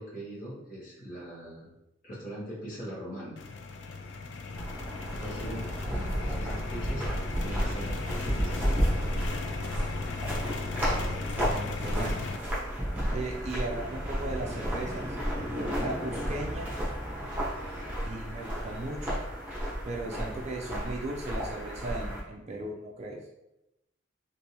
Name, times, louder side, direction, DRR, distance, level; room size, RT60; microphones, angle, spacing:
voice 1, 0.0-1.7 2.0-3.4 5.1-8.8, right 1 dB, 40° left, -7 dB, 1.3 m, -41 dB
sound 1, 3.4-12.4, left 3 dB, 60° left, 0.3 m, -37 dB
sound 2, 4.6-22.2, equal, 10° right, 0.9 m, -32 dB
voice 2, 11.1-12.2 13.1-15.0 15.3-16.7 18.0-19.2 19.9-23.2, right 2 dB, 35° right, -1 dB, 0.4 m, -37 dB
3.3 x 2.6 x 2.8 m, 0.90 s
head